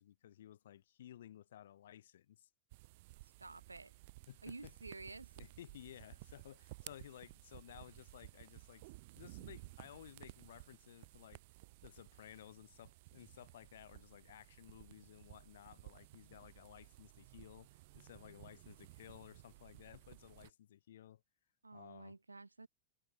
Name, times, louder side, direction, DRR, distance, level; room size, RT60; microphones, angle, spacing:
voice 1, 0.0-2.5 4.3-4.7 5.4-8.8 9.1-11.4 11.8-21.2 21.7-22.1, left 11 dB, 60° left, 1.6 m, -56 dB
sound 1, 2.7-20.5, right 22 dB, 50° right, 1.4 m, -57 dB
voice 2, 3.2-3.9 4.4-5.3 21.6-22.7, right 3 dB, 80° right, 0.7 m, -51 dB
figure-of-eight pair, 90°, 0 cm